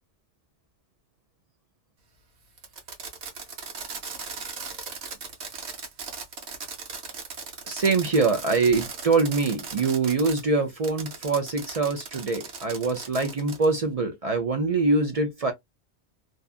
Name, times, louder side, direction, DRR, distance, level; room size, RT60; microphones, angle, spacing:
Fireworks, 2.6-10.4 10.8-13.7, right 5 dB, 70° right, 1.1 m, -38 dB
voice 1, 7.7-15.5, right 3 dB, 50° right, 0.4 m, -24 dB
2.7 x 2.3 x 2.3 m
omnidirectional pair, 1.2 m